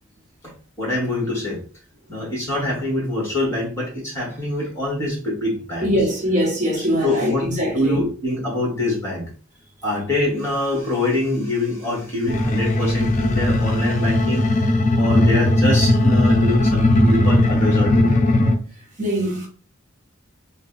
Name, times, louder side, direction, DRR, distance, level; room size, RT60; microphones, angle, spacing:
voice 1, 0.8-1.6 2.1-5.9 6.8-7.5 7.7-9.3 9.8-14.5 14.9-18.2, left 1 dB, 15° left, 1.7 m, -24 dB
voice 2, 5.8-8.0 19.0-19.5, equal, 35° right, 0.9 m, -22 dB
sound 1, 12.3-18.5, left 1 dB, 40° left, 0.5 m, -17 dB
3.9 x 2.2 x 3.8 m
head